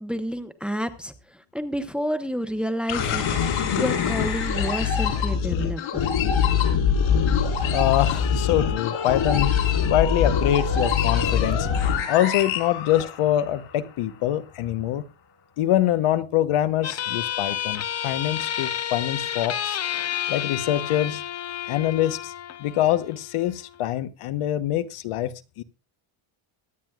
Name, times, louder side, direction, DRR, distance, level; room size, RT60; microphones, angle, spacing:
voice 1, 0.0-6.1, equal, ahead, 0.9 m, -30 dB
sound 1, 2.9-13.5, left 7 dB, 65° left, 4.7 m, -23 dB
voice 2, 7.7-11.7 12.1-15.1 15.6-19.8 20.3-21.2 21.7-22.3 22.6-25.6, left 12 dB, 85° left, 1.1 m, -24 dB
sound 2, 16.8-23.9, left 10 dB, 30° left, 0.5 m, -31 dB
23.0 x 9.3 x 2.4 m
cardioid pair, 170°, 50 cm